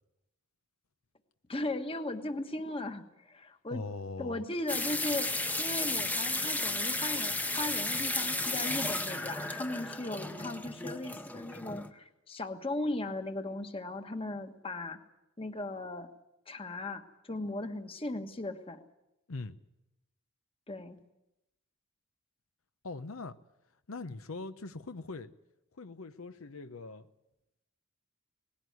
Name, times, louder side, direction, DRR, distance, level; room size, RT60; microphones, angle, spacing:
voice 1, 1.5-3.8 4.2-15.0 15.4-16.1 16.5-17.0 17.3-18.8 20.7-21.0, left 2 dB, 25° left, 7 dB, 1.4 m, -37 dB
voice 2, 3.7-4.4 19.3-19.6 22.8-23.4 23.9-25.3 25.8-27.1, left 3 dB, 80° left, 10 dB, 0.8 m, -41 dB
sound 1, 4.7-11.9, left 2 dB, 10° left, 0.9 m, -33 dB
19.5 x 16.0 x 9.4 m, 0.91 s
head